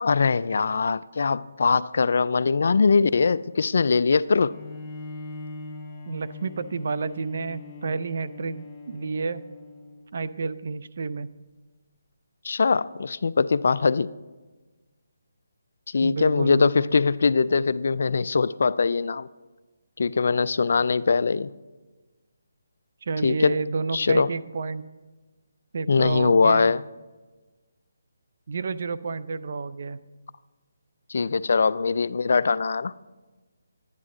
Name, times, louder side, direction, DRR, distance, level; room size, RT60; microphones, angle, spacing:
voice 1, 0.0-4.6 12.4-14.1 15.9-19.3 20.0-21.5 23.2-23.6 23.9-24.3 25.9-26.8 31.1-32.9, left 4 dB, 60° left, 0.3 m, -22 dB
Bowed string instrument, 4.5-10.1, left 3 dB, 20° left, 1.1 m, -41 dB
voice 2, 6.1-9.4 10.1-11.3 16.0-17.0 23.0-24.9 25.7-26.8 28.5-30.0, right 4 dB, 55° right, 0.5 m, -30 dB
12.0 x 9.6 x 3.8 m
hypercardioid pair, 160°, 0 cm